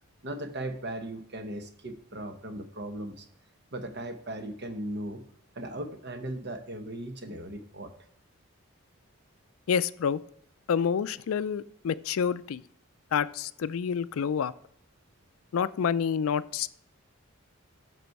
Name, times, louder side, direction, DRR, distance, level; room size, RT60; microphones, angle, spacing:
voice 1, 0.2-3.3 3.7-5.2 5.5-7.9, right 1 dB, 50° right, 7 dB, 1.0 m, -37 dB
voice 2, 9.7-10.2 10.7-12.6 13.1-14.5 15.5-16.7, left 7 dB, 70° left, 15 dB, 0.4 m, -28 dB
8.1 x 6.1 x 4.6 m, 0.67 s
head